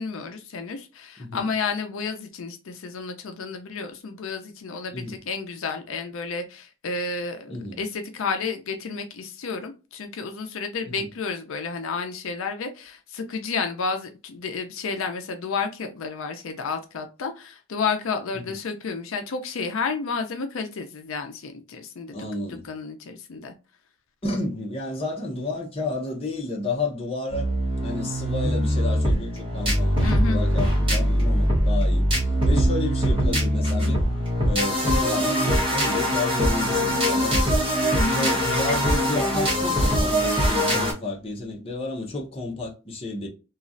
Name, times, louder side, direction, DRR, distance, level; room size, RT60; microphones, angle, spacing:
voice 1, 0.0-22.2 22.6-23.5 30.0-30.4 38.0-38.3, left 4 dB, 80° left, 0.5 m, -31 dB
voice 2, 7.5-7.8 11.0-11.1 18.3-18.4 22.1-22.7 24.2-27.5 27.8-32.1 32.4-34.0 34.4-37.5 38.1-43.3, left 2 dB, 25° left, 0.7 m, -31 dB
sound 1, 27.3-40.9, equal, 25° right, 1.0 m, -22 dB
3.0 x 2.4 x 2.5 m
head